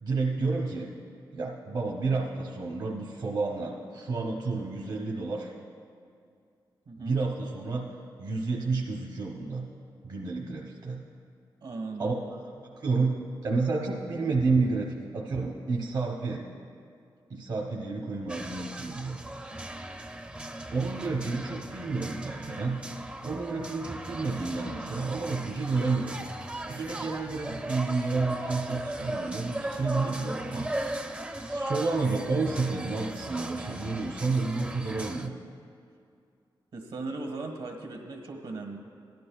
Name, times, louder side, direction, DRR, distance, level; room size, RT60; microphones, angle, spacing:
voice 1, 0.0-0.9 1.3-5.5 7.0-7.9 8.2-9.7 10.0-11.0 12.0-12.2 12.6-13.1 13.4-16.5 17.3-19.2 20.7-22.8 23.2-26.1 26.6-30.9 31.5-35.3, right 3 dB, 50° right, -2 dB, 0.9 m, -30 dB
voice 2, 6.9-7.2 11.6-12.1 36.7-38.8, right 3 dB, 70° right, 2 dB, 1.4 m, -37 dB
sound 1, 18.3-35.3, right 1 dB, 15° right, 0.5 m, -37 dB
16.5 x 12.0 x 2.3 m, 2.4 s
wide cardioid pair, 145°, 9 cm